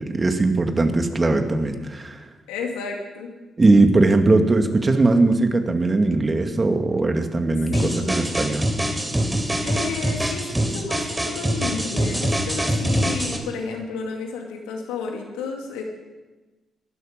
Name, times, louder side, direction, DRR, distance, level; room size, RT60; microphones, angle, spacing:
voice 1, 0.1-2.2 3.6-8.7, right 2 dB, 30° right, 6 dB, 2.2 m, -19 dB
voice 2, 2.5-3.3 7.7-8.2 9.6-15.8, left 5 dB, 80° left, 2 dB, 2.4 m, -32 dB
sound 1, 7.7-13.4, equal, 15° right, 3.4 m, -24 dB
20.5 x 12.5 x 5.2 m, 1.2 s
hypercardioid pair, 40°, 0 cm